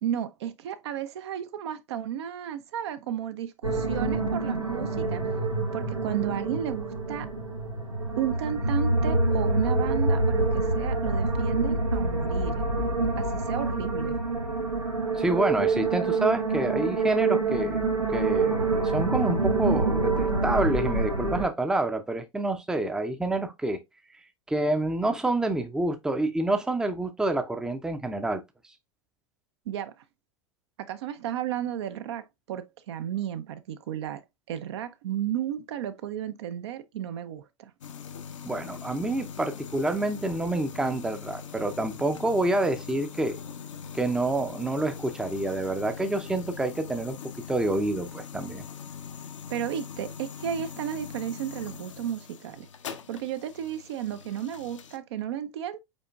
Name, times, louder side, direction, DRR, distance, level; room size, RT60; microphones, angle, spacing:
voice 1, 0.0-5.3 5.7-7.3 8.2-12.6 13.2-14.2 29.7-30.0 30.8-34.2 34.5-37.7 49.5-52.7 53.1-55.8, right 10 dB, 55° right, 0.5 m, -33 dB
sound 1, 3.6-21.5, right 3 dB, 85° right, 1.0 m, -26 dB
voice 2, 15.1-17.8 18.1-23.8 24.5-28.4 38.4-43.4 43.9-47.2 47.5-48.7, right 2 dB, 5° right, 0.5 m, -28 dB
sound 2, 37.8-55.0, left 7 dB, 70° left, 0.6 m, -42 dB
5.2 x 4.3 x 2.2 m
figure-of-eight pair, 85°, 17 cm